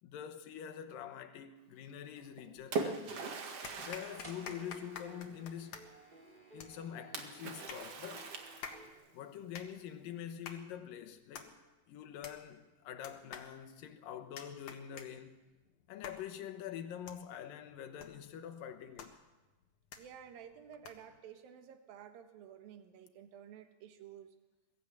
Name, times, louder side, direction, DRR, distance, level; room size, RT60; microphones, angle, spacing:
voice 1, 0.0-3.2 3.7-5.8 6.5-8.3 9.1-11.6 11.9-15.5 15.9-19.2, left 9 dB, 80° left, 2.9 m, -45 dB
Splash splatter, 2.2-5.3 7.1-9.1, right 4 dB, 50° right, 2.5 m, -41 dB
sound 1, 3.6-21.2, left 7 dB, 60° left, 2.7 m, -53 dB
sound 2, 4.2-8.9, right 1 dB, 15° right, 3.4 m, -56 dB
voice 2, 20.0-24.3, right 9 dB, 90° right, 3.1 m, -52 dB
22.0 x 14.5 x 8.6 m
omnidirectional pair, 4.0 m